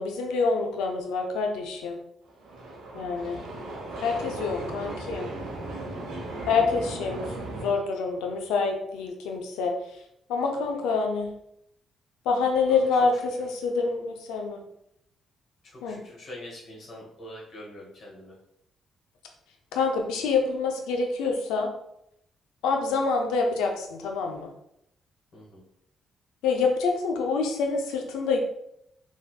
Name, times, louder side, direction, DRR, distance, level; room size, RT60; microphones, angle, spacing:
voice 1, 0.0-2.0 2.9-3.4 4.0-5.3 6.5-7.3 7.5-9.7 10.3-11.3 12.3-14.6 15.8-16.0 19.7-21.7 22.6-24.5 26.4-28.4, left 4 dB, 85° left, 3 dB, 0.4 m, -26 dB
sound 1, 2.3-7.7, right 2 dB, 70° right, 0.8 m, -36 dB
voice 2, 8.1-8.5 12.7-12.8 13.1-13.2 15.6-18.4 25.3-25.6, left 1 dB, 60° left, -3 dB, 1.3 m, -45 dB
3.3 x 2.6 x 2.2 m, 0.76 s
supercardioid pair, 55°, 0 cm